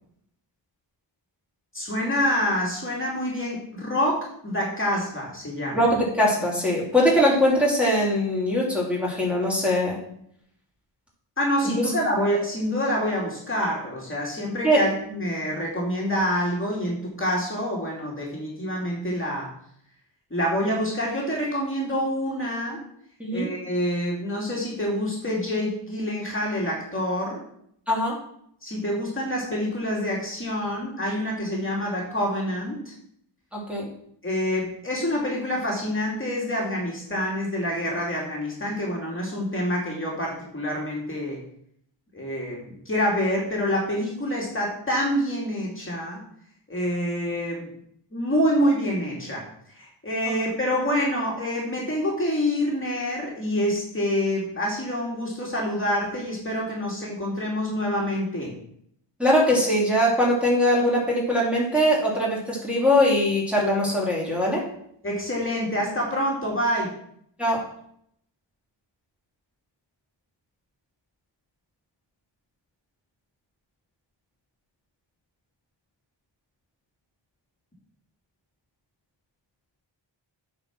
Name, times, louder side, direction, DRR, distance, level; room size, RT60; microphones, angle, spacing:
voice 1, 1.7-5.8 11.4-19.5 20.3-22.8 23.3-27.4 28.6-32.9 34.2-41.4 42.1-46.2 46.7-47.7 48.1-49.4 49.7-58.6 65.0-66.9, equal, 25° left, -3 dB, 2.6 m, -27 dB
voice 2, 5.7-10.0 11.8-11.9 14.6-14.8 23.2-23.5 27.9-28.1 33.5-33.9 59.2-64.6 67.4-67.6, equal, 5° right, -6 dB, 2.8 m, -21 dB
8.9 x 4.9 x 6.1 m, 0.69 s
wide cardioid pair, 105°, 46 cm